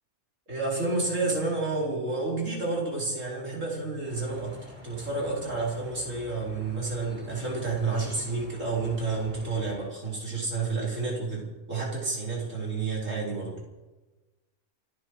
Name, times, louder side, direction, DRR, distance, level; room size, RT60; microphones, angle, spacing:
voice 1, 0.5-4.6 4.8-13.5, right 3 dB, 60° right, -3 dB, 5.0 m, -30 dB
sound 1, 4.0-9.9, equal, 5° right, 5.9 m, -47 dB
28.5 x 10.5 x 4.9 m, 1.2 s
omnidirectional pair, 1.5 m